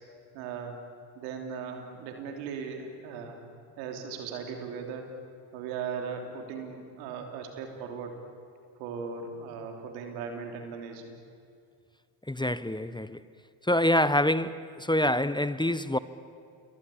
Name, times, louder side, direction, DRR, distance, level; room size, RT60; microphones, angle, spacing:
voice 1, 0.3-0.8 1.1-3.4 3.8-5.1 5.5-8.1 8.8-11.2, right 6 dB, 90° right, 3.3 m, -38 dB
voice 2, 12.3-13.2 13.6-16.0, left 1 dB, 10° left, 1.1 m, -26 dB
29.0 x 23.5 x 8.6 m
hypercardioid pair, 50°, 49 cm